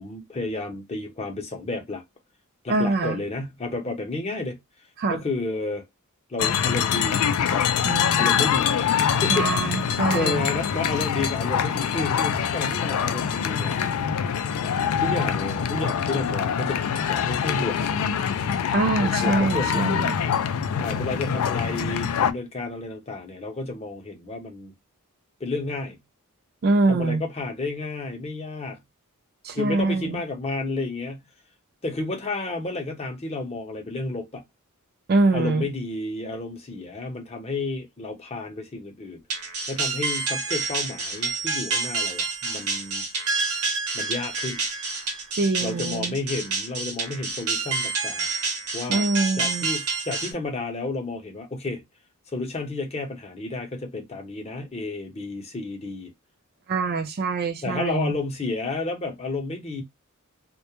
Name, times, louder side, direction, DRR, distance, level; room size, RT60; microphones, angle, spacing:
voice 1, 0.0-2.0 2.6-4.6 5.1-5.8 6.3-7.2 7.5-7.6 8.2-8.7 9.2-9.7 10.1-13.8 14.7-17.8 19.0-20.0 20.8-24.7 25.4-26.0 26.9-28.8 29.5-31.3 31.8-34.4 35.3-43.0 43.9-44.6 45.6-48.3 48.7-49.1 49.4-51.8 52.3-56.1 57.6-59.8, left 3 dB, 30° left, 0.6 m, -31 dB
voice 2, 2.7-3.2 5.0-5.2 7.8-8.4 9.3-10.4 18.7-20.2 26.6-27.2 29.4-30.2 35.1-35.7 45.3-46.2 48.9-49.7 56.7-58.2, right 3 dB, 45° right, 0.4 m, -24 dB
sound 1, 6.4-22.3, left 8 dB, 75° left, 0.3 m, -24 dB
sound 2, 39.3-50.3, right 4 dB, 80° right, 0.8 m, -28 dB
2.2 x 2.0 x 2.9 m
head